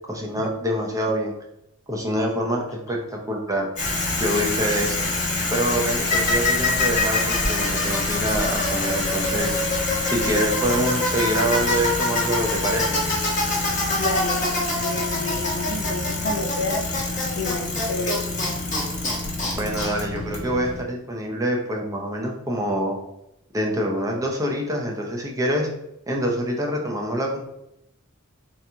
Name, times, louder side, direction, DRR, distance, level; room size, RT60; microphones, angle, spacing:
voice 1, 0.1-1.3 1.9-3.7 4.2-5.1 5.5-9.6 10.0-13.0 19.5-23.0 23.5-25.7 26.1-27.4, equal, 15° right, 0 dB, 0.6 m, -25 dB
Bicycle, 3.8-20.8, left 2 dB, 40° left, 1.2 m, -24 dB
voice 2, 14.0-16.8 17.3-18.1, left 2 dB, 70° left, 3 dB, 0.7 m, -30 dB
3.8 x 2.9 x 3.5 m, 0.84 s
head